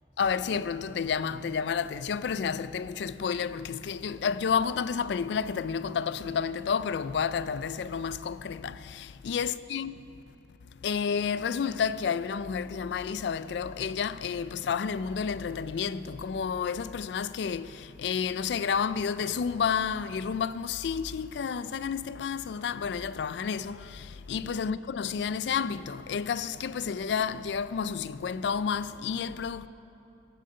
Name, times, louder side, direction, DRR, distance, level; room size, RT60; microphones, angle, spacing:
voice 1, 0.2-10.0 10.8-29.7, left 6 dB, 75° left, 0.3 m, -30 dB
16.5 x 7.5 x 5.3 m
head